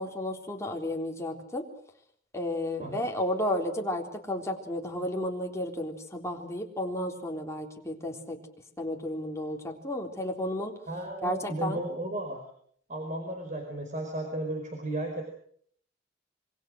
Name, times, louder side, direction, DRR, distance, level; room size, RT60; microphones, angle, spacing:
voice 1, 0.0-1.6 2.3-8.4 8.8-10.7 11.2-11.8, left 1 dB, 15° left, 1 dB, 3.7 m, -32 dB
voice 2, 10.9-12.4 12.9-15.2, right 1 dB, 40° right, 3 dB, 4.9 m, -34 dB
27.0 x 24.0 x 6.5 m, 0.64 s
head